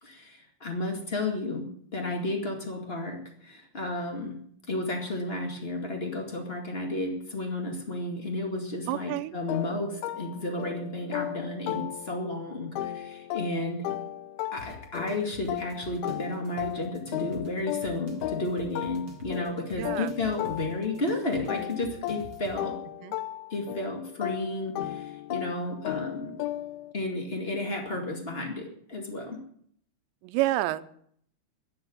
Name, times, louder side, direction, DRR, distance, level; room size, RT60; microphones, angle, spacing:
voice 1, 0.0-1.6 1.9-4.4 4.7-13.8 14.5-22.8 23.5-26.3 26.9-29.4, left 2 dB, 35° left, 3 dB, 0.9 m, -32 dB
voice 2, 8.9-9.3 19.8-20.1 23.0-23.1 30.2-30.8, right 16 dB, 90° right, 13 dB, 3.0 m, -28 dB
sound 1, 9.5-12.4 12.8-21.1 21.5-26.9, left 13 dB, 80° left, 2.4 m, -36 dB
sound 2, 14.6-22.6, right 1 dB, 40° right, 1.8 m, -47 dB
11.5 x 11.0 x 8.7 m, 0.63 s
omnidirectional pair, 4.9 m